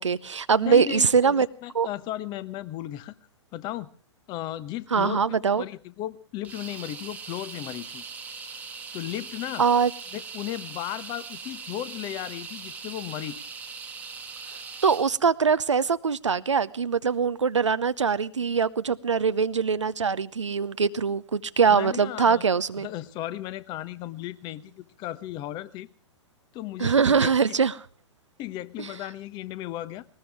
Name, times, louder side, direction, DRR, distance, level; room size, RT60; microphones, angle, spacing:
voice 1, 0.0-1.5 1.7-1.9 4.9-5.6 9.6-9.9 14.8-22.9 26.8-27.7 28.8-28.9, right 6 dB, 80° right, 0.7 m, -23 dB
voice 2, 0.6-3.1 3.5-3.9 4.3-8.0 8.9-9.6 10.1-13.4 21.7-22.5 22.8-25.9 26.5-27.3 28.4-30.1, left 14 dB, 30° left, 1.0 m, -35 dB
sound 1, 6.4-15.1, right 5 dB, 10° right, 1.4 m, -40 dB
20.0 x 19.5 x 3.5 m
figure-of-eight pair, 110°, 15 cm